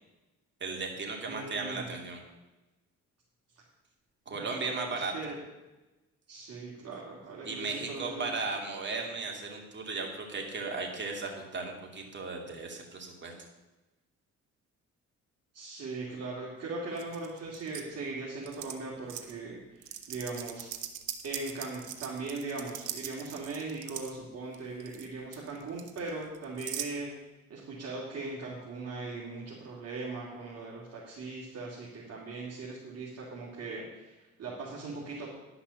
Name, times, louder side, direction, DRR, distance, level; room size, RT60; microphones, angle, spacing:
voice 1, 0.6-2.2 4.3-5.3 7.4-13.3, right 3 dB, 35° right, 1 dB, 2.6 m, -36 dB
voice 2, 1.3-1.9 4.3-5.4 6.3-8.3 15.5-20.7 21.2-27.1 27.5-35.3, right 3 dB, 55° right, -6 dB, 2.6 m, -39 dB
sound 1, 17.0-17.8 18.4-18.7 19.1-19.3 19.8-24.1 24.5-25.1 25.3-26.9, right 11 dB, 85° right, 1.0 m, -40 dB
11.0 x 5.8 x 7.1 m, 1.1 s
cardioid pair, 90°, 30 cm